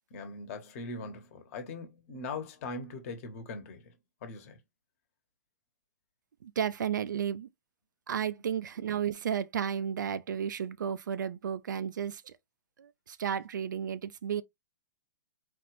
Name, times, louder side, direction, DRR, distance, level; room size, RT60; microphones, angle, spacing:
voice 1, 0.1-3.9 4.2-4.6, left 3 dB, 45° left, 1.2 m, -41 dB
voice 2, 6.4-7.5 8.1-12.3 12.8-14.4, right 8 dB, 75° right, 0.4 m, -33 dB
4.2 x 2.5 x 3.2 m
hypercardioid pair, 130°, 10 cm